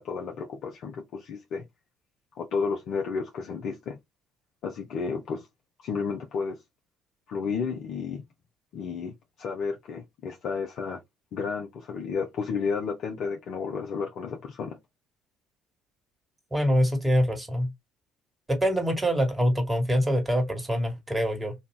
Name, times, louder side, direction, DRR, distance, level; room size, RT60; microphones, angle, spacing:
voice 1, 0.0-1.6 2.4-4.0 4.6-5.5 5.8-6.6 7.3-8.2 8.7-11.0 11.3-14.8, left 5 dB, 60° left, 0.9 m, -32 dB
voice 2, 16.5-17.7 18.5-21.5, equal, 20° right, 1.9 m, -24 dB
4.2 x 2.6 x 2.4 m
hypercardioid pair, 55°, 0 cm